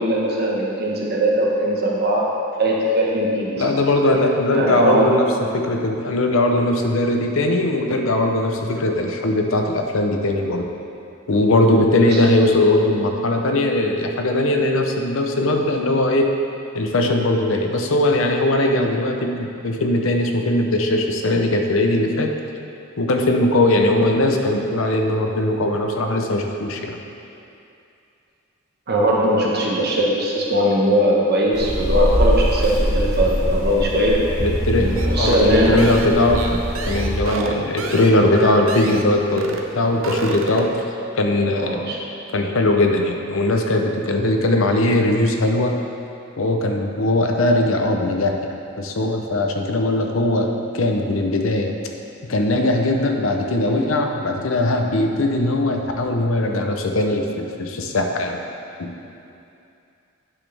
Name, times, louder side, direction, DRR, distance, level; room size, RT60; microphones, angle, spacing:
voice 1, 0.0-3.7 4.5-5.2 12.0-12.2 28.9-34.3 34.8-35.9 37.4-37.6 41.6-42.0, right 1 dB, 50° right, -3 dB, 1.1 m, -20 dB
voice 2, 3.6-10.7 11.3-16.3 16.7-22.3 23.0-27.0 34.4-40.7 41.1-41.9 42.3-45.8 46.4-51.8 52.3-58.4 58.8-58.9, left 1 dB, 65° left, 3 dB, 0.7 m, -20 dB
sound 1, 31.5-37.2, equal, ahead, 1.6 m, -23 dB
sound 2, 35.0-39.1 39.4-39.7 39.9-40.8, right 3 dB, 65° right, 0.7 m, -29 dB
9.3 x 6.2 x 3.4 m, 2.7 s
head